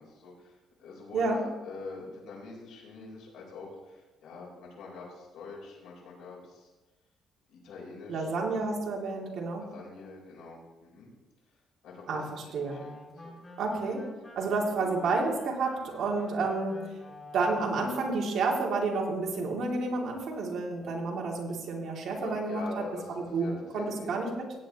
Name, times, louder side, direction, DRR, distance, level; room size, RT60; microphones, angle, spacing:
voice 1, 0.0-6.7 7.5-8.8 9.6-11.1 11.8-13.7 14.4-14.5 22.1-24.1, left 4 dB, 90° left, -3 dB, 4.0 m, -45 dB
voice 2, 8.1-9.6 12.1-12.8 13.6-14.0 14.4-17.0 17.3-22.6 23.1-24.5, right 3 dB, 60° right, -1 dB, 2.6 m, -30 dB
sound 1, 12.6-18.1, left 2 dB, 20° left, 2.4 m, -48 dB
16.5 x 9.1 x 3.0 m, 1.1 s
cardioid pair, 140°, 0 cm